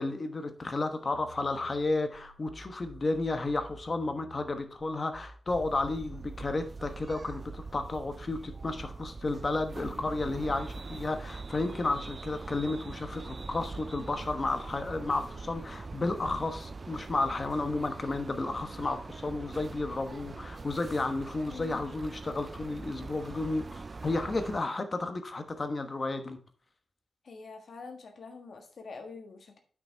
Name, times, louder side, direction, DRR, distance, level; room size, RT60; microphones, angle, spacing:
voice 1, 0.0-26.4, left 2 dB, 35° left, 7 dB, 1.1 m, -32 dB
sound 1, 1.1-6.6, right 3 dB, 80° right, 2.4 m, -52 dB
sound 2, 5.5-24.6, right 3 dB, 35° right, 0.3 m, -43 dB
voice 2, 21.5-21.8 27.2-29.6, left 4 dB, 65° left, 4 dB, 1.4 m, -45 dB
8.9 x 6.0 x 4.5 m, 0.42 s
wide cardioid pair, 155°, 0 cm